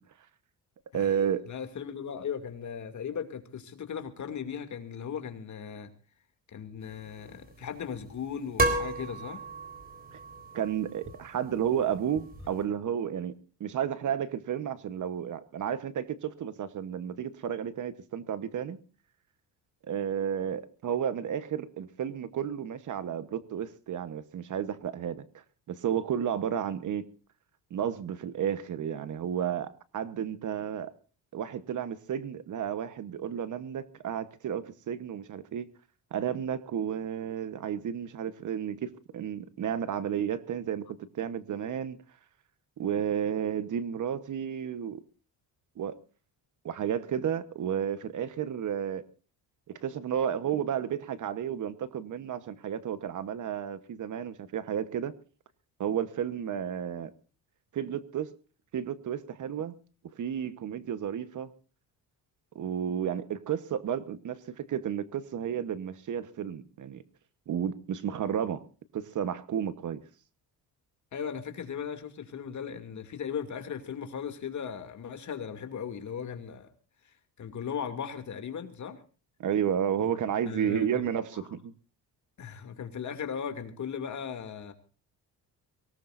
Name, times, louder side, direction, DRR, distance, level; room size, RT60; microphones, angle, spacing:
voice 1, 0.9-1.4 10.1-10.2 10.5-13.3 13.6-18.8 19.9-25.2 25.7-27.1 27.7-30.9 31.3-35.7 36.1-42.0 42.8-45.0 45.8-45.9 46.6-49.0 49.8-55.1 55.8-57.1 57.7-58.3 58.7-59.7 60.1-61.5 62.5-67.0 67.5-68.6 68.9-70.0 79.4-81.7, right 9 dB, 50° right, 13 dB, 1.2 m, -32 dB
voice 2, 1.5-5.9 6.5-9.4 71.1-76.7 77.0-79.0 80.0-80.1 80.5-81.1 81.3-81.4 82.4-84.7, left 7 dB, 45° left, 7 dB, 2.6 m, -37 dB
sound 1, 6.8-12.6, right 2 dB, 25° right, 4.1 m, -35 dB
24.0 x 18.0 x 2.6 m, 0.37 s
cardioid pair, 135°, 39 cm